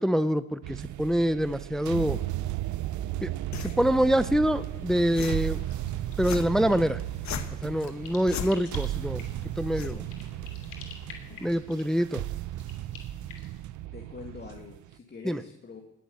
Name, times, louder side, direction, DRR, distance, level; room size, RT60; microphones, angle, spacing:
voice 1, 0.0-2.2 3.2-3.3 3.6-5.6 6.2-7.0 7.6-9.2 9.6-10.0 11.4-12.2 15.2-15.4, equal, ahead, 13 dB, 0.6 m, -25 dB
sound 1, 0.6-14.9, right 14 dB, 75° right, 0.7 m, -35 dB
sound 2, 3.5-11.5, left 8 dB, 65° left, 1.4 m, -41 dB
sound 3, 5.5-13.6, left 6 dB, 85° left, 3.0 m, -50 dB
voice 2, 11.5-12.1 13.9-15.8, left 4 dB, 35° left, 2 dB, 2.2 m, -45 dB
18.5 x 7.4 x 8.6 m, 0.82 s
cardioid pair, 90°, 30 cm